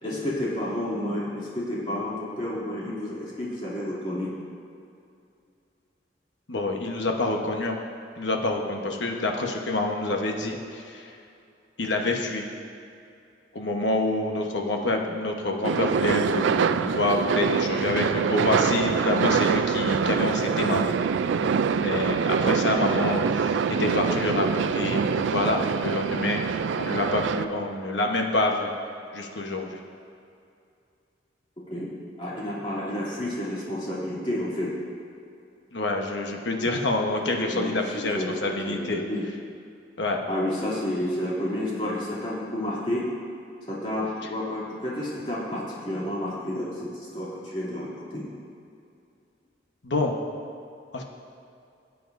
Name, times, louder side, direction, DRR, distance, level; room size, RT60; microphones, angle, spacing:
voice 1, 0.0-4.3 31.7-31.9 32.2-34.7 37.5-39.2 40.3-43.0 43.7-48.3, left 1 dB, 30° left, -7 dB, 2.8 m, -30 dB
voice 2, 6.5-7.8 8.2-11.1 11.8-12.5 13.5-20.9 21.8-26.4 26.8-28.7 29.1-29.8 35.7-39.0 40.0-40.2 49.8-50.2 50.9-51.0, left 2 dB, 75° left, 2 dB, 1.1 m, -27 dB
sound 1, 15.6-27.4, right 6 dB, 90° right, 0.4 m, -25 dB
18.0 x 8.5 x 2.6 m, 2.6 s
head